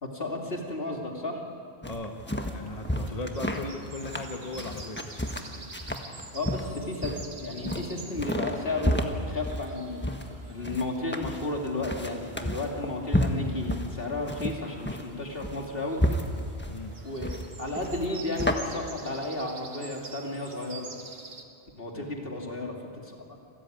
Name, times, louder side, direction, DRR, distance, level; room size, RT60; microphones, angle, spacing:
voice 1, 0.0-1.4 6.3-10.1 10.5-16.2 17.0-20.9 21.8-23.4, left 2 dB, 60° left, 1 dB, 2.9 m, -33 dB
voice 2, 1.8-2.2 2.5-5.0 16.7-16.9 21.9-22.1, left 2 dB, 35° left, 3 dB, 1.3 m, -37 dB
sound 1, 1.8-18.5, left 1 dB, 10° left, 1.4 m, -32 dB
sound 2, 2.4-21.4, right 4 dB, 65° right, 1.9 m, -48 dB
27.0 x 14.0 x 9.4 m, 2.5 s
omnidirectional pair, 1.1 m